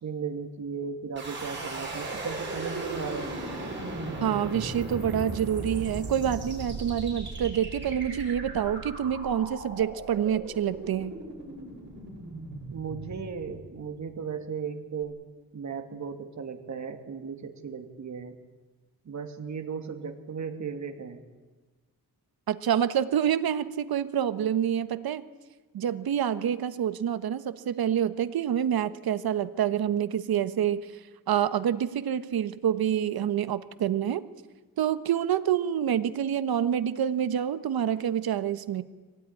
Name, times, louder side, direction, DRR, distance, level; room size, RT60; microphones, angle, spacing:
voice 1, 0.0-3.4 12.7-15.2 15.5-18.3 19.0-21.2, right 6 dB, 50° right, 6 dB, 2.4 m, -36 dB
sound 1, 1.2-14.1, right 2 dB, 30° right, 7.3 m, -37 dB
voice 2, 4.2-11.2 22.5-25.2 25.7-30.9 31.3-34.3 34.8-38.8, right 9 dB, 70° right, 12 dB, 1.3 m, -27 dB
23.5 x 17.5 x 10.0 m, 1.3 s
wide cardioid pair, 135°, 37 cm